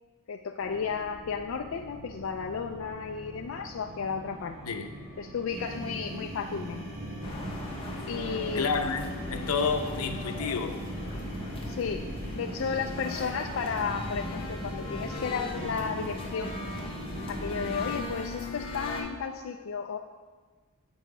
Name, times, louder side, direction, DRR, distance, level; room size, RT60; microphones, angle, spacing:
voice 1, 0.3-4.6 5.2-6.8 8.1-9.0 11.7-12.1 12.3-16.6 17.3-20.0, left 5 dB, 65° left, 4 dB, 0.4 m, -33 dB
sound 1, 0.6-18.0, equal, 35° right, 1.5 m, -45 dB
sound 2, 5.5-18.1, right 1 dB, 55° right, 1.8 m, -40 dB
sound 3, 7.2-19.0, left 2 dB, 25° left, 0.9 m, -39 dB
voice 2, 8.5-10.8, left 5 dB, 90° left, 6 dB, 0.7 m, -30 dB
8.1 x 6.1 x 4.7 m, 1.4 s
head